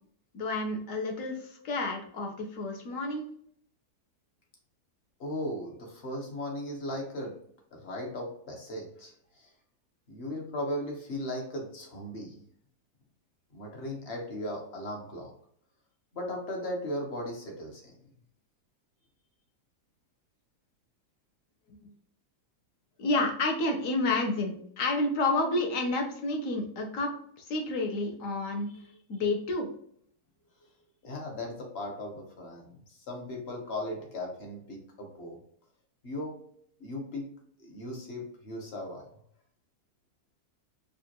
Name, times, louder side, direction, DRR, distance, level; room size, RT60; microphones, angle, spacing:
voice 1, 0.3-3.2 23.0-27.1 27.5-28.7 29.1-29.7, left 2 dB, 60° left, 2 dB, 1.1 m, -30 dB
voice 2, 5.2-7.3 7.7-9.5 10.1-12.4 13.5-15.3 16.1-17.9 28.7-28.8 31.0-35.4 36.0-36.4 36.8-37.3 37.6-39.1, left 1 dB, 45° left, 1 dB, 1.1 m, -37 dB
5.0 x 2.5 x 2.9 m, 0.64 s
omnidirectional pair, 1.7 m